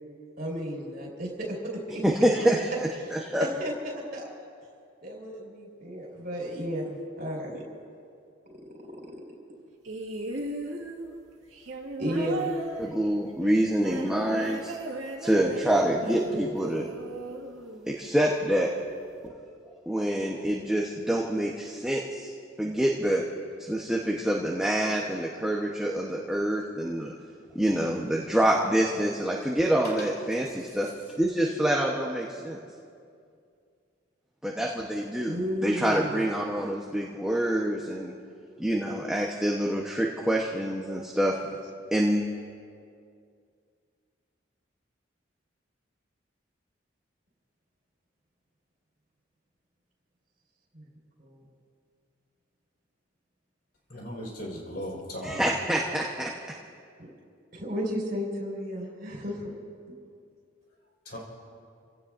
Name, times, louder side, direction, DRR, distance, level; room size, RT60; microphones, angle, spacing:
voice 1, 0.4-1.6 1.9-2.0 3.4-4.5 5.0-7.6 12.0-12.5 35.3-36.2 50.7-50.8 51.2-51.4 57.0-57.1 57.5-59.5, equal, 50° right, -2 dB, 4.8 m, -33 dB
voice 2, 2.0-3.4 12.8-14.7 15.2-16.9 17.9-18.7 19.9-22.3 22.6-23.2 23.6-27.1 27.5-30.9 31.2-32.6 34.4-38.1 38.6-41.4 41.9-42.2 55.2-56.3, right 1 dB, 5° right, -2 dB, 1.0 m, -26 dB
sound 1, 9.8-18.2 19.2-19.3, right 2 dB, 90° right, 2.0 m, -37 dB
voice 3, 53.9-55.5 61.1-61.2, equal, 50° left, -3 dB, 4.7 m, -37 dB
29.5 x 17.0 x 2.6 m, 2.3 s
head